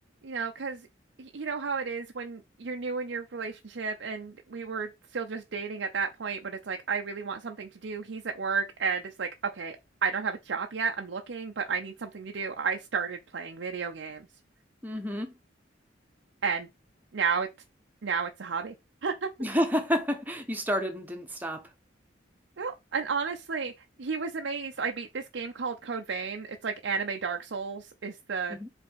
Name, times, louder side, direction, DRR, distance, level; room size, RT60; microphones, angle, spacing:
voice 1, 0.2-0.9 1.2-9.8 10.0-14.3 16.4-16.7 17.1-17.5 18.0-18.7 19.0-19.3 22.6-23.7 24.0-28.6, right 5 dB, 65° right, 0.6 m, -32 dB
voice 2, 14.8-15.3 19.4-21.6 28.5-28.7, equal, 10° right, 1.1 m, -29 dB
5.1 x 3.4 x 5.6 m
head